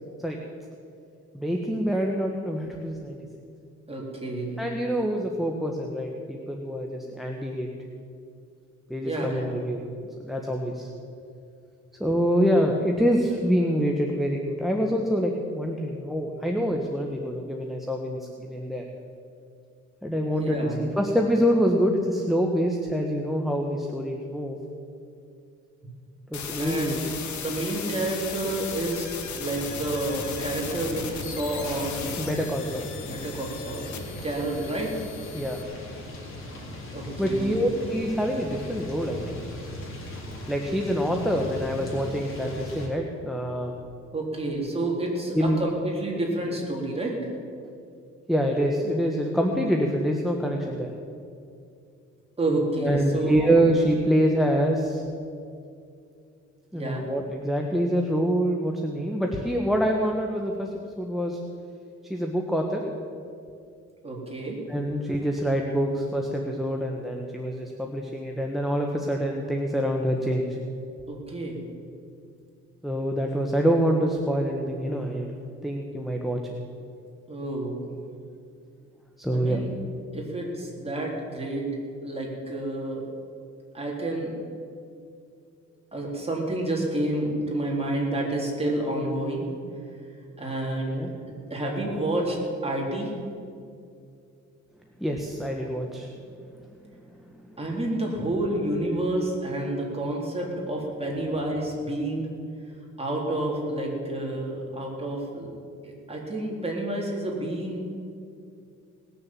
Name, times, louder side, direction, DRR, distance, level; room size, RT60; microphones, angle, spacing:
voice 1, 1.3-3.2 4.6-7.7 8.9-9.8 10.2-10.9 12.0-18.8 20.0-24.6 26.3-27.0 32.2-32.9 35.3-35.6 37.2-39.4 40.5-43.7 45.3-45.6 48.3-51.0 52.8-55.0 56.7-60.7 61.0-61.4 62.1-62.8 64.7-70.6 72.8-75.3 75.6-76.4 79.2-79.6 90.9-91.1 95.0-96.1, equal, ahead, 1 dB, 1.3 m, -26 dB
voice 2, 3.9-4.6 9.0-9.5 20.4-20.8 26.6-27.0 27.4-32.3 33.0-35.0 36.9-37.7 44.1-47.3 52.4-53.5 56.7-57.1 64.0-64.6 71.1-71.7 77.3-77.9 79.3-79.7 80.1-81.7 82.0-83.1 83.7-84.3 85.9-89.5 90.4-92.4 92.6-93.1 97.6-102.3 103.0-105.5 105.8-107.8, right 1 dB, 20° right, -2 dB, 3.9 m, -29 dB
sound 1, 26.3-35.6, left 7 dB, 70° left, 1.7 m, -37 dB
sound 2, 29.4-42.9, left 1 dB, 45° left, 3.8 m, -39 dB
19.0 x 7.0 x 7.5 m, 2.5 s
cardioid pair, 90°, 30 cm